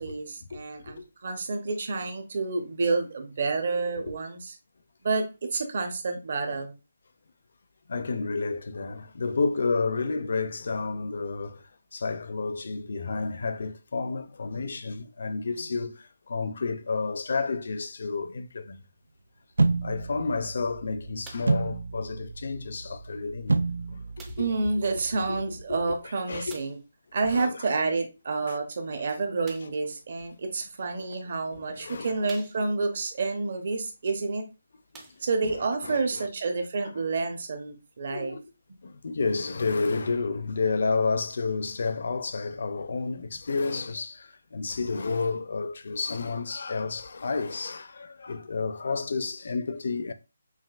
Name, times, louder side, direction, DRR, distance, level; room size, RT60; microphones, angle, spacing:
voice 1, 0.0-4.6 5.0-5.2 5.5-6.7 24.4-26.8 27.1-34.4 35.2-38.4, right 3 dB, 40° right, 0.8 m, -29 dB
voice 2, 7.9-11.6 11.9-15.9 16.3-18.8 19.8-23.6 24.4-24.5 25.3-25.4 26.3-26.6 27.2-27.6 28.5-28.6 31.5-32.3 34.9-35.1 35.8-36.3 38.1-38.4 38.8-50.1, left 4 dB, 50° left, 0.4 m, -30 dB
sound 1, 19.6-25.6, right 3 dB, 80° right, 0.3 m, -30 dB
sound 2, 21.2-21.6 22.5-22.6 24.2-24.6 26.5-26.9 29.4-29.9 30.8-30.9 31.5-31.6 32.2-32.9 34.2-34.3 34.8-35.6 36.4-36.5, right 4 dB, 10° right, 0.4 m, -50 dB
5.8 x 2.5 x 2.4 m
hypercardioid pair, 175°, 0 cm